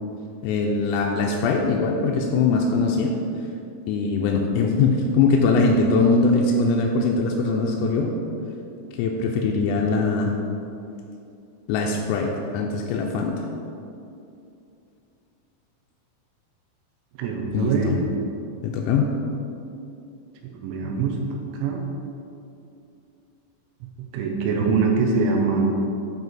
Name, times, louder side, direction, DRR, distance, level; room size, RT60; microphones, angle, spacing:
voice 1, 0.4-3.1 3.9-8.1 9.0-10.3 11.7-13.4 17.5-18.0 18.6-19.1, left 4 dB, 85° left, 0 dB, 3.3 m, -21 dB
voice 2, 17.2-17.9 20.6-21.8 24.1-25.7, right 4 dB, 80° right, 1 dB, 2.9 m, -23 dB
9.3 x 4.8 x 4.1 m, 2.7 s
omnidirectional pair, 6.0 m